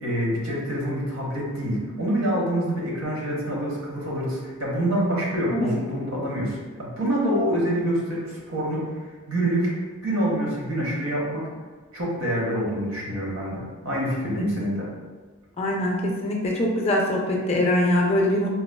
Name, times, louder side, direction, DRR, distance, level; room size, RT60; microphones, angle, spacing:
voice 1, 0.0-8.8 9.3-9.7 10.0-11.4 11.9-14.9, right 1 dB, 70° right, -4 dB, 1.0 m, -26 dB
voice 2, 15.6-18.5, left 1 dB, 30° left, -1 dB, 0.4 m, -23 dB
3.9 x 2.3 x 2.2 m, 1.4 s
head